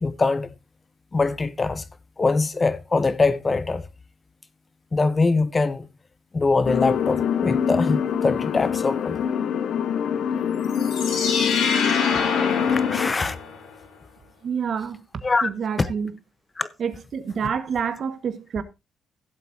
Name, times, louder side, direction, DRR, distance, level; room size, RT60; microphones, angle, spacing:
voice 1, 0.0-0.5 1.1-1.8 2.2-3.8 4.9-5.9 6.3-9.2 12.7-13.4 15.2-15.5 15.8-15.9 16.6-16.7, left 3 dB, 30° left, 1.0 m, -23 dB
sound 1, 6.7-13.1, left 7 dB, 65° left, 0.6 m, -24 dB
sound 2, 10.6-13.8, left 5 dB, 90° left, 4.7 m, -26 dB
voice 2, 14.4-15.0 15.4-16.1 16.8-18.6, right 7 dB, 55° right, 1.6 m, -28 dB
16.5 x 7.8 x 2.8 m
cardioid pair, 90°, 0 cm